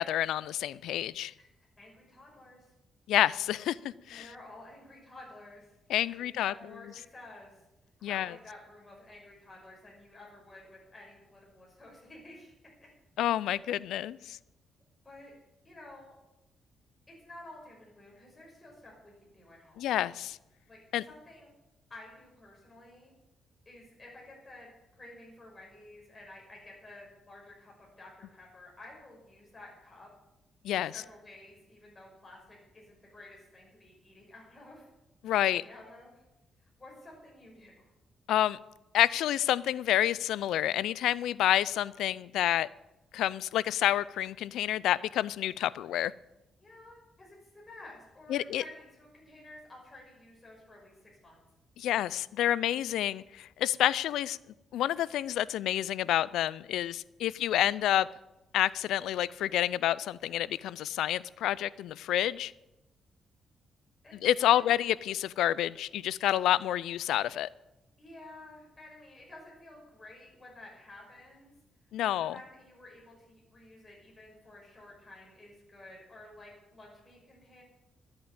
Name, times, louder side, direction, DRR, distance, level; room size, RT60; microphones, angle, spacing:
voice 1, 0.0-1.3 3.1-4.3 5.9-6.5 8.0-8.3 13.2-14.4 19.8-20.4 20.9-21.0 30.6-30.9 35.2-35.6 38.3-38.6 38.9-42.7 43.1-46.1 48.3-48.6 51.8-54.4 54.7-58.1 58.5-62.5 64.2-67.5 71.9-72.4, left 12 dB, 85° left, 20 dB, 0.4 m, -28 dB
voice 2, 1.8-2.7 4.1-5.7 6.1-7.6 8.0-12.5 12.8-12.9 15.0-15.3 15.6-16.2 17.1-19.9 20.7-20.8 21.1-21.5 21.9-23.1 23.7-24.7 25.0-30.1 30.7-34.9 35.3-36.2 36.6-37.9 46.6-51.4 64.0-64.1 64.4-64.7 68.0-71.5 72.0-77.6, left 2 dB, 25° left, -3 dB, 5.9 m, -52 dB
13.0 x 8.7 x 8.8 m, 0.97 s
cardioid pair, 90°, 0 cm